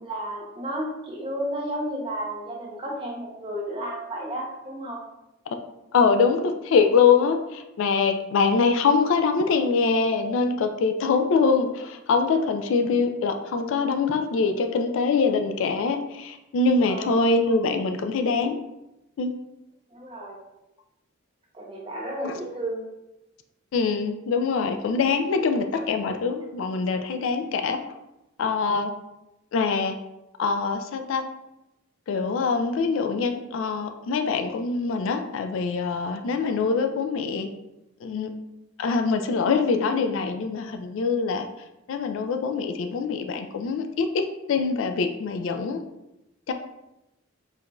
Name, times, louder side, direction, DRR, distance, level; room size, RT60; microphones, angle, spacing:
voice 1, 0.0-5.0 16.9-17.3 19.9-20.4 21.5-22.9, right 1 dB, 25° right, -2 dB, 0.7 m, -32 dB
voice 2, 5.9-18.6 19.2-19.3 22.2-22.4 23.7-27.8 28.4-28.9 29.5-29.9 30.4-31.2 32.1-37.5 38.0-38.3 38.8-41.5 41.9-45.8 46.5-46.6, left 4 dB, 70° left, 6 dB, 0.3 m, -24 dB
4.6 x 2.6 x 2.2 m, 0.93 s
head